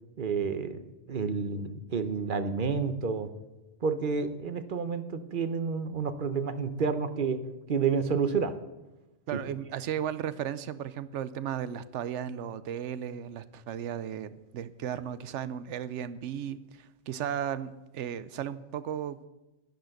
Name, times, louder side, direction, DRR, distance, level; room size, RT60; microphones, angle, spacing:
voice 1, 0.2-3.3 3.8-7.4 7.7-8.5 9.3-9.4, right 5 dB, 50° right, 11 dB, 0.9 m, -30 dB
voice 2, 9.3-19.3, right 9 dB, 85° right, 15 dB, 1.0 m, -35 dB
11.0 x 10.5 x 6.5 m, 1.0 s
omnidirectional pair, 1.2 m